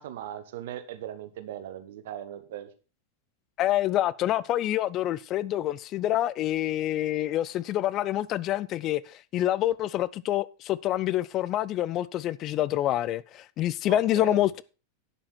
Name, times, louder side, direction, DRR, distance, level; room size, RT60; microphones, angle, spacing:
voice 1, 0.0-2.7 13.9-14.4, right 11 dB, 55° right, 1.5 m, -39 dB
voice 2, 3.6-14.6, left 13 dB, 35° left, 0.5 m, -27 dB
11.0 x 9.1 x 4.3 m
figure-of-eight pair, 90°, 0 cm